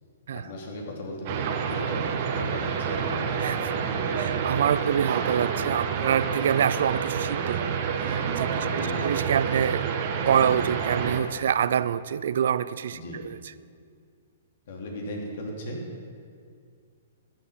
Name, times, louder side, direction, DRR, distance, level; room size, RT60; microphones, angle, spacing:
voice 1, 0.3-4.6 8.5-9.1 12.9-13.2 14.7-15.8, left 1 dB, 60° left, 0 dB, 3.0 m, -37 dB
sound 1, 1.3-11.2, right 6 dB, 45° right, 1.2 m, -28 dB
voice 2, 4.2-7.7 8.0-8.5 8.8-9.8 10.3-13.4, right 8 dB, 70° right, 17 dB, 0.4 m, -26 dB
13.5 x 8.3 x 5.8 m, 2.2 s
hypercardioid pair, 135°, 0 cm